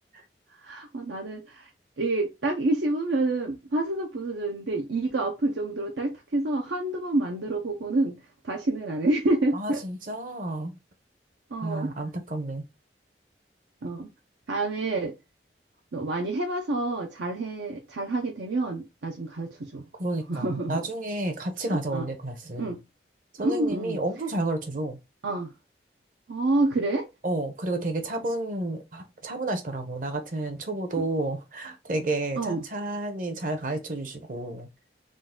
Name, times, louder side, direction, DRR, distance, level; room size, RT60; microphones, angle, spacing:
voice 1, 0.6-1.6 2.0-8.2 8.4-9.8 11.5-11.9 13.8-14.1 14.5-15.1 15.9-19.9 20.3-20.8 21.9-22.0 22.6-22.8 23.4-24.0 25.2-25.5 26.3-27.1 32.4-32.6, right 2 dB, 85° right, 0.7 m, -28 dB
voice 2, 9.5-10.7 11.6-12.6 19.9-22.8 23.4-25.0 27.2-34.7, right 2 dB, 45° right, 0.8 m, -31 dB
3.8 x 2.4 x 3.7 m
head